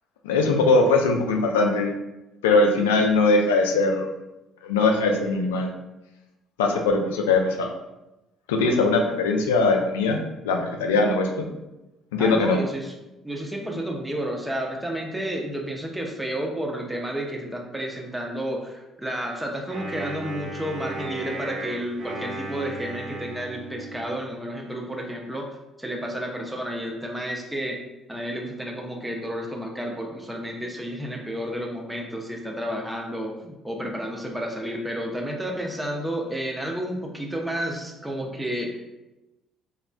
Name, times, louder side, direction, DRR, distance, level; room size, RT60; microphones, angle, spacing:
voice 1, 0.2-1.9 2.4-4.1 4.6-5.7 6.6-7.7 8.5-10.2 10.4-11.5 12.1-12.6, left 3 dB, 85° left, 3 dB, 0.3 m, -21 dB
voice 2, 12.2-13.0 13.2-25.5 25.8-27.8 28.1-39.0, equal, 10° right, 1 dB, 0.6 m, -31 dB
Wind instrument woodwind instrument, 19.7-24.1, right 1 dB, 65° right, 1.1 m, -35 dB
3.1 x 2.4 x 2.2 m, 0.99 s
hypercardioid pair, 55°, 0 cm